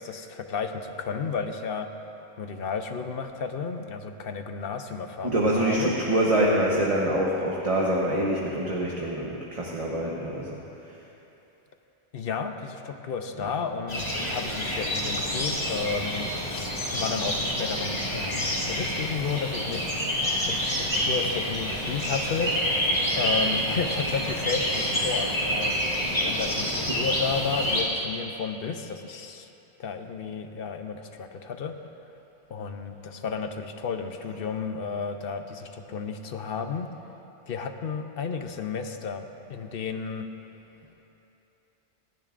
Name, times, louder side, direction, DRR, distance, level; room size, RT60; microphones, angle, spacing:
voice 1, 0.0-1.9 2.4-5.9 12.1-22.6 23.2-29.5 29.8-31.7 32.5-36.9 37.5-40.3, left 5 dB, 60° left, 6 dB, 0.9 m, -32 dB
voice 2, 5.2-10.6 13.4-13.5 26.8-27.0, right 1 dB, 35° right, -4 dB, 1.1 m, -25 dB
sound 1, 13.9-27.8, equal, 35° left, 2.3 m, -28 dB
27.0 x 10.5 x 2.5 m, 3.0 s
omnidirectional pair, 1.1 m